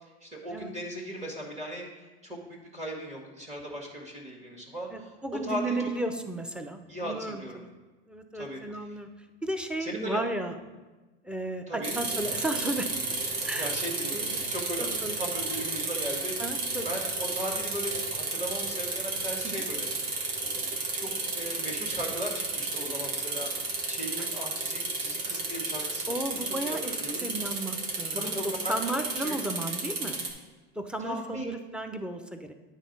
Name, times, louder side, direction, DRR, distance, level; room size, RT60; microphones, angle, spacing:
voice 1, 0.2-2.4 2.7-5.9 6.9-7.6 8.3-8.9 9.8-10.2 11.7-12.0 13.6-16.4 16.8-19.9 20.4-23.5 23.9-27.3 28.1-28.8 29.2-29.4 31.0-31.5, equal, 25° right, -2 dB, 1.7 m, -37 dB
voice 2, 4.9-7.7 8.1-9.1 9.4-10.5 11.2-12.9 13.4-13.7 14.0-14.4 14.8-15.2 16.4-16.9 19.4-19.5 24.2-24.3 26.1-30.2 30.8-32.5, right 2 dB, 5° right, 6 dB, 0.7 m, -34 dB
sound 1, 11.8-30.3, right 3 dB, 80° right, 1.6 m, -32 dB
9.1 x 4.0 x 5.4 m, 1.2 s
hypercardioid pair, 90°, 30 cm